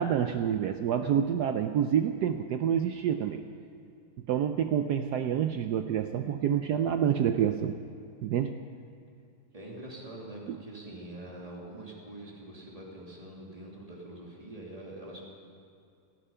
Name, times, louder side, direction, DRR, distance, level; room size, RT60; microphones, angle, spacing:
voice 1, 0.0-3.4 4.3-7.8 8.2-8.6 10.5-10.6, right 9 dB, 90° right, 8 dB, 0.9 m, -28 dB
voice 2, 9.5-15.2, right 1 dB, 15° right, -3 dB, 2.7 m, -44 dB
18.5 x 13.5 x 5.6 m, 2.4 s
omnidirectional pair, 2.4 m